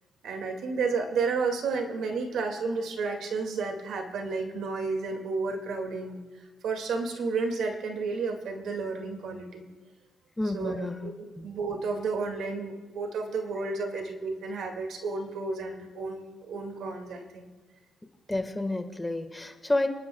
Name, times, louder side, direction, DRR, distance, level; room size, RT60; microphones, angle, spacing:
voice 1, 0.2-6.2 6.6-9.7 10.5-17.5, right 4 dB, 75° right, 3 dB, 2.1 m, -32 dB
voice 2, 10.4-11.5 18.3-19.9, left 2 dB, 15° left, 6 dB, 1.5 m, -30 dB
29.0 x 11.5 x 2.3 m, 1.3 s
cardioid pair, 90°, 0 cm